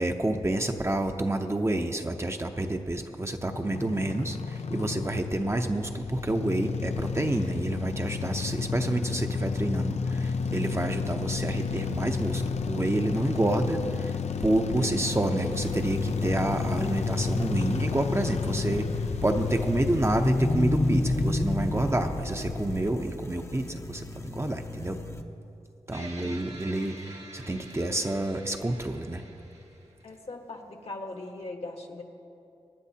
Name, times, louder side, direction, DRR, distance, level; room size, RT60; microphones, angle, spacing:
voice 1, 0.0-14.1 14.4-18.9 19.2-25.0 25.9-29.2, right 1 dB, 25° right, 5 dB, 0.7 m, -29 dB
sound 1, 3.5-22.9, left 5 dB, 80° left, 0.5 m, -31 dB
sound 2, 15.6-25.2, left 1 dB, 25° left, 0.7 m, -33 dB
voice 2, 25.9-26.3 30.0-32.0, left 2 dB, 65° left, 3 dB, 1.4 m, -40 dB
sound 3, 25.9-30.3, right 2 dB, 75° right, 1.5 m, -47 dB
25.0 x 9.6 x 2.8 m, 2.7 s
cardioid pair, 55°, 11 cm